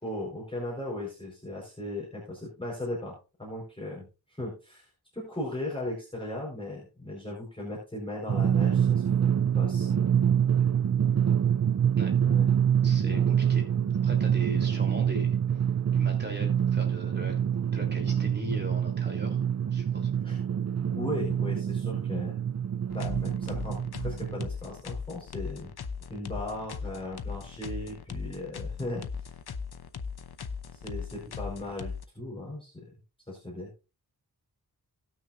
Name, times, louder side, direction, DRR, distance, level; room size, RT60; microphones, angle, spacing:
voice 1, 0.0-4.9 5.1-9.3 9.5-10.1 12.2-12.5 13.0-13.2 14.5-14.6 20.2-20.4 20.9-22.4 22.9-25.7 26.1-29.3 30.7-32.7 33.3-33.7, left 1 dB, 15° left, -4 dB, 4.7 m, -37 dB
Drum, 8.3-24.5, right 8 dB, 45° right, 0.5 m, -26 dB
voice 2, 12.8-13.6 14.0-15.4 15.9-17.3 17.7-19.5 19.7-20.1 31.3-31.4, right 1 dB, 30° right, 2 dB, 3.5 m, -39 dB
sound 1, 22.9-32.0, left 5 dB, 80° left, 0.8 m, -38 dB
18.5 x 6.4 x 2.6 m, 0.30 s
wide cardioid pair, 65°, 37 cm